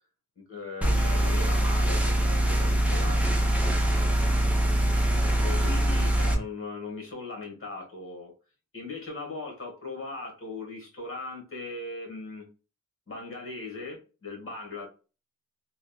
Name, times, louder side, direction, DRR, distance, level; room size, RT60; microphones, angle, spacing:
voice 1, 0.4-3.4 5.4-8.3 8.7-12.5 13.1-14.9, left 3 dB, 40° left, 1.3 m, -39 dB
sound 1, 0.8-6.3, right 1 dB, 5° right, 0.6 m, -23 dB
3.2 x 2.1 x 2.3 m
wide cardioid pair, 90°, 33 cm